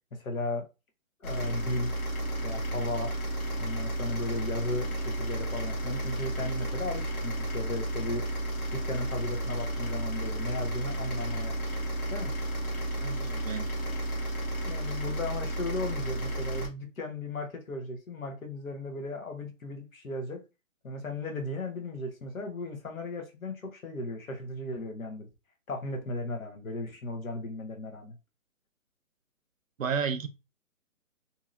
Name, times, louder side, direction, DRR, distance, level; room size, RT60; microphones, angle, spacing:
voice 1, 0.1-0.6 1.2-1.9 2.4-3.1 3.6-8.2 8.7-11.5 12.1-12.3 14.6-20.4 20.8-25.3 25.7-28.2, left 2 dB, 75° left, 1.1 m, -35 dB
sound 1, 1.2-16.7, right 1 dB, 90° left, 1.3 m, -32 dB
voice 2, 13.0-13.7 29.8-30.3, right 6 dB, 70° right, 0.6 m, -32 dB
2.7 x 2.7 x 2.4 m
hypercardioid pair, 175°, 42 cm